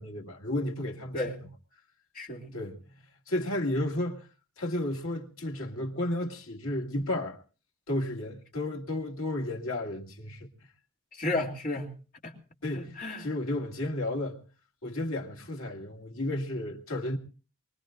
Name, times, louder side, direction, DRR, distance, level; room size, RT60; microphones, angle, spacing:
voice 1, 0.0-1.2 2.5-2.8 3.3-4.3 4.6-7.4 7.9-10.5 12.6-14.4 14.8-17.2, left 1 dB, 75° left, 2.2 m, -32 dB
voice 2, 1.1-1.4 2.1-2.6 11.2-11.9 12.2-12.3 12.7-13.3, left 2 dB, 40° left, 2.8 m, -33 dB
23.5 x 20.0 x 2.5 m
head